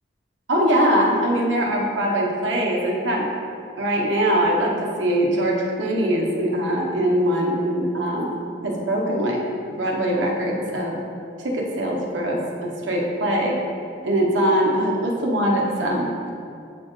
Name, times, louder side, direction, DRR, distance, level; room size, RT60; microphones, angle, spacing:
voice 1, 0.5-3.3 3.7-8.3 8.6-9.4 9.8-11.0 11.4-13.6 14.0-16.3, right 1 dB, 85° right, -2 dB, 1.0 m, -22 dB
8.3 x 4.3 x 3.2 m, 2.4 s
head